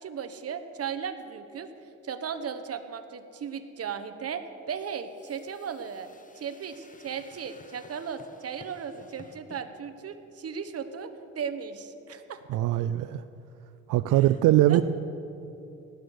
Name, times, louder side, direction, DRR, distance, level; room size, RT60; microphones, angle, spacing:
voice 1, 0.0-1.7 2.0-6.1 6.4-12.4 14.7-14.8, right 7 dB, 50° right, 9 dB, 1.2 m, -36 dB
sound 1, 4.8-9.6, left 3 dB, 25° left, 1.3 m, -54 dB
voice 2, 12.5-13.2 13.9-14.8, right 14 dB, 90° right, 13 dB, 0.5 m, -22 dB
18.0 x 6.5 x 9.2 m, 2.9 s
cardioid pair, 90°, 30 cm